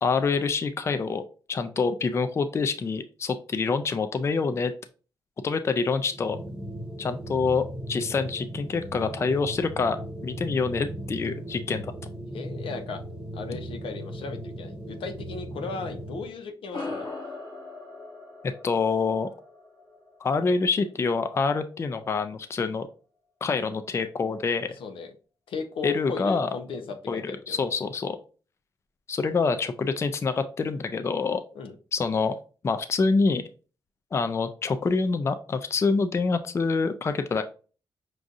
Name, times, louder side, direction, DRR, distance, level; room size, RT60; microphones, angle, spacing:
voice 1, 0.0-4.7 5.4-6.4 7.0-11.9 18.6-19.3 20.2-22.9 23.4-24.7 25.8-26.5 27.1-27.2 27.5-28.2 29.1-31.4 31.9-32.4 32.6-33.4 34.1-37.4, left 4 dB, 30° left, 10 dB, 0.3 m, -26 dB
sound 1, 6.1-16.3, right 1 dB, 10° right, 0.9 m, -38 dB
voice 2, 12.3-13.0 13.3-17.1 24.8-25.1 25.5-27.6 31.5-31.7, left 4 dB, 85° left, 7 dB, 0.6 m, -36 dB
sound 2, 16.7-21.5, left 3 dB, 45° left, 1.3 m, -40 dB
6.0 x 2.6 x 2.4 m, 0.37 s
wide cardioid pair, 120°, 9 cm